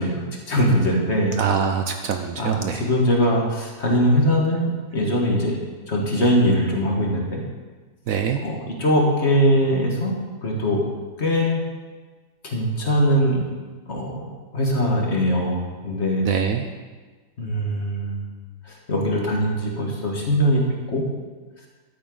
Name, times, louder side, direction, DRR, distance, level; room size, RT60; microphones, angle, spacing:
voice 1, 0.0-1.4 2.4-5.6 5.9-7.4 8.4-10.1 10.4-10.8 11.2-11.6 12.4-13.5 13.9-14.3 14.5-16.3 17.4-18.2 18.7-20.6 20.9-21.0, equal, 45° left, -1 dB, 1.8 m, -21 dB
voice 2, 1.4-2.8 8.1-8.4 16.2-16.7, right 7 dB, 65° right, 6 dB, 0.9 m, -24 dB
12.0 x 9.2 x 3.8 m, 1.3 s
omnidirectional pair, 1.7 m